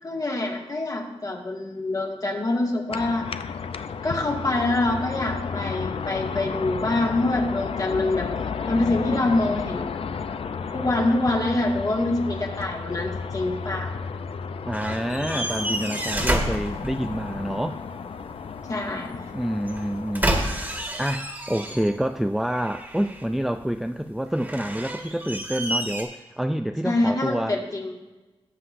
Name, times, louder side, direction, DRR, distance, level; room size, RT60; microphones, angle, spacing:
voice 1, 0.0-3.3 4.0-8.3 8.7-10.0 10.7-13.9 18.7-19.2 26.8-28.0, left 2 dB, 35° left, 1 dB, 1.7 m, -25 dB
sound 1, 2.9-20.9, left 5 dB, 60° left, 0.5 m, -33 dB
voice 2, 14.7-17.8 19.3-27.6, equal, ahead, 7 dB, 0.3 m, -28 dB
sound 2, 14.7-17.4 19.6-22.1 22.5-23.4 24.3-26.0, right 1 dB, 15° right, 1.7 m, -29 dB
17.0 x 7.7 x 2.6 m, 1.1 s
wide cardioid pair, 110°, 11 cm